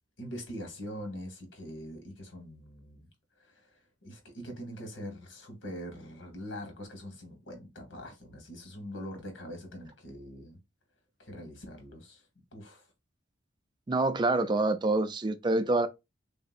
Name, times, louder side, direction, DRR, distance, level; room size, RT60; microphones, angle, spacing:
voice 1, 0.2-3.1 3.4-10.6 11.2-12.3 12.5-12.9, equal, 75° left, 1.2 m, -43 dB
voice 2, 13.9-15.9, right 2 dB, 25° right, 0.4 m, -26 dB
3.4 x 2.7 x 2.4 m
head